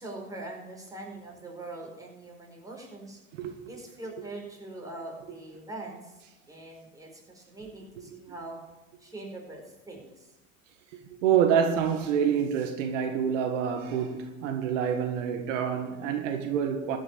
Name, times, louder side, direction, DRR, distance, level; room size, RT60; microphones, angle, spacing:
voice 1, 0.0-3.2 3.7-6.2 6.5-8.6 9.0-10.3, right 2 dB, 10° right, 4.6 m, -42 dB
voice 2, 11.2-17.0, right 8 dB, 80° right, 1.6 m, -27 dB
14.0 x 6.5 x 8.3 m
supercardioid pair, 100°, 37 cm